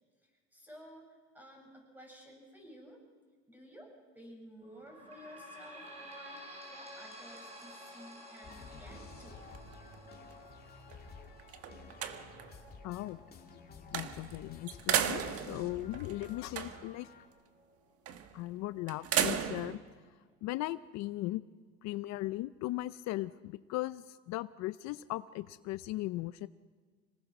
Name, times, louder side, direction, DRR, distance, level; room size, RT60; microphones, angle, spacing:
voice 1, 0.5-3.0 3.5-9.5, equal, 5° right, 0 dB, 7.6 m, -53 dB
sound 1, 4.6-17.8 18.3-18.4 18.7-18.8 19.6-19.7, equal, 20° right, 6.3 m, -53 dB
sound 2, 8.4-17.3, left 5 dB, 30° left, 2.5 m, -52 dB
sound 3, 8.9-10.4 10.9-11.0 11.4-12.6 13.9-14.4 14.7-17.0 18.1-18.4 18.9-19.8, right 9 dB, 50° right, 1.5 m, -35 dB
voice 2, 12.8-13.2 13.9-17.1 18.3-19.8 20.4-21.4 21.8-26.5, left 17 dB, 65° left, 14 dB, 0.6 m, -38 dB
26.0 x 19.0 x 6.1 m, 1.5 s
cardioid pair, 115°, 29 cm